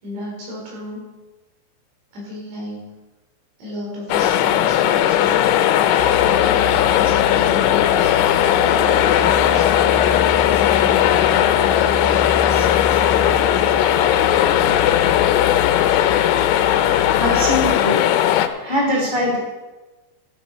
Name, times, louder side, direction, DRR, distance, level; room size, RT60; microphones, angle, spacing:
voice 1, 0.0-1.1 2.1-2.9 3.6-5.5 6.2-8.1 8.4-14.2, left 1 dB, 70° right, -4 dB, 6.7 m, -35 dB
sound 1, 4.1-18.5, left 11 dB, 85° left, 3.1 m, -17 dB
sound 2, 6.0-17.8, left 4 dB, 70° left, 2.9 m, -30 dB
voice 2, 17.1-18.0 18.6-19.4, left 1 dB, 5° left, -2 dB, 2.2 m, -21 dB
12.5 x 12.5 x 4.2 m, 1.2 s
omnidirectional pair, 5.4 m